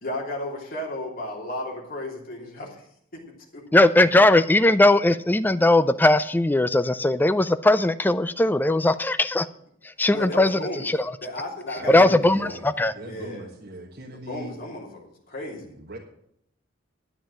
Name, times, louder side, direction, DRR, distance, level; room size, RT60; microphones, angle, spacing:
voice 1, 0.0-2.8 3.1-3.7 10.1-10.9 11.2-12.6 13.0-13.5 14.1-15.0 15.3-15.7, left 1 dB, 45° left, -1 dB, 3.0 m, -34 dB
voice 2, 3.7-9.5 9.8-11.1 11.9-12.9, left 2 dB, 10° left, 12 dB, 0.4 m, -19 dB
voice 3, 11.7-12.6 12.9-14.6 15.5-16.0, right 1 dB, 50° right, -1 dB, 1.5 m, -40 dB
10.5 x 9.0 x 6.3 m, 0.70 s
head